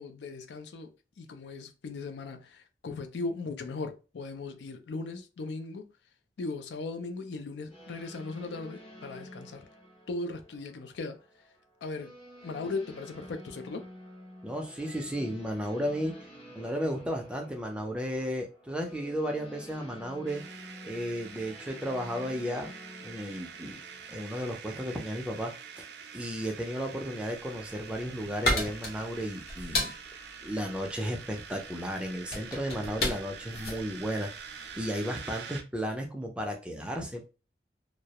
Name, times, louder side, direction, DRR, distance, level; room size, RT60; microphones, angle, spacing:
voice 1, 0.0-5.9 6.4-9.7 10.1-11.2 11.8-12.1 12.4-13.9, left 3 dB, 85° left, 0.4 m, -38 dB
sound 1, 7.7-25.8, equal, 30° left, 0.7 m, -50 dB
voice 2, 14.4-16.2 16.6-20.4 20.8-22.8 23.0-23.8 24.1-25.9 26.1-29.9 30.4-34.3 34.8-37.2, equal, 5° right, 0.4 m, -34 dB
sound 2, 20.3-35.6, right 6 dB, 75° right, 0.4 m, -46 dB
sound 3, 27.6-35.0, left 1 dB, 60° left, 0.8 m, -34 dB
2.3 x 2.0 x 2.8 m
head